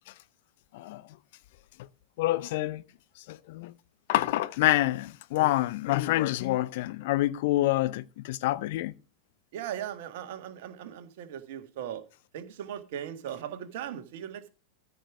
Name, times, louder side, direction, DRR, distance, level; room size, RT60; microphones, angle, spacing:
voice 1, 2.2-2.8 3.3-3.7 4.1-8.9, left 16 dB, 50° left, 0.7 m, -27 dB
voice 2, 9.5-12.0 12.3-14.5, right 10 dB, 50° right, 1.7 m, -38 dB
14.0 x 5.2 x 6.1 m
figure-of-eight pair, 90°, 0 cm